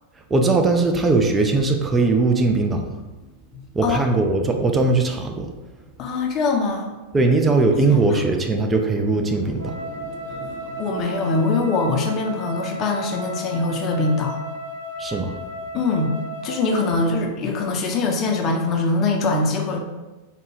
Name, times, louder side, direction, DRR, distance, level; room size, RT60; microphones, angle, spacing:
voice 1, 0.3-3.0 3.7-5.5 7.1-9.8 15.0-15.4, right 3 dB, 15° right, 4 dB, 0.4 m, -20 dB
voice 2, 3.5-4.0 6.0-6.9 7.9-8.2 10.3-10.5 10.8-14.4 15.7-16.1 16.4-19.8, left 3 dB, 35° left, 2 dB, 0.6 m, -23 dB
sound 1, 7.3-12.4, equal, 35° right, 0.9 m, -41 dB
Wind instrument woodwind instrument, 9.6-17.2, right 1 dB, 75° right, 0.9 m, -34 dB
4.2 x 2.1 x 3.2 m, 1.1 s
figure-of-eight pair, 90°, 0 cm